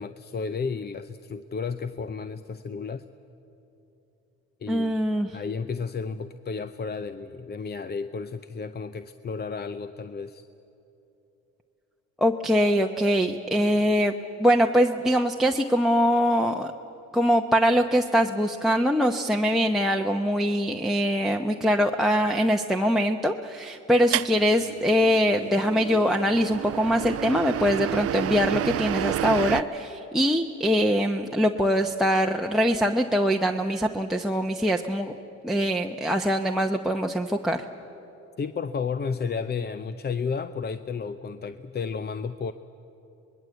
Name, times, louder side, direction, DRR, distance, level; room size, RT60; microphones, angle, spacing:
voice 1, 0.0-3.0 4.6-4.9 5.3-10.4 38.4-42.5, left 5 dB, 35° left, 11 dB, 0.6 m, -32 dB
voice 2, 4.7-5.3 12.2-14.1 14.4-16.7 17.1-35.1 35.4-37.6, equal, ahead, 5 dB, 0.8 m, -23 dB
sound 1, 24.1-29.6, right 13 dB, 50° right, 0.4 m, -30 dB
25.0 x 20.5 x 8.0 m, 3.0 s
cardioid pair, 90°, 30 cm